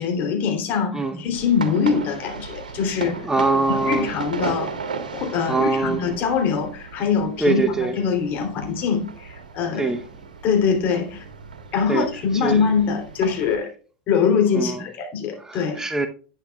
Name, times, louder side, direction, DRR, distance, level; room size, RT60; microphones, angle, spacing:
voice 1, 0.0-3.3 3.7-4.7 5.1-10.0 10.4-11.2 11.7-13.7 14.1-15.8, left 6 dB, 45° left, 3.1 m, -23 dB
sound 1, 1.3-13.6, right 5 dB, 85° right, 1.5 m, -35 dB
voice 2, 3.2-4.1 5.5-6.0 7.4-8.0 9.7-10.0 11.9-12.1 12.3-12.6 14.5-14.8 15.4-16.1, right 3 dB, 10° right, 0.9 m, -23 dB
11.0 x 9.1 x 2.3 m
hypercardioid pair, 90°, 4 cm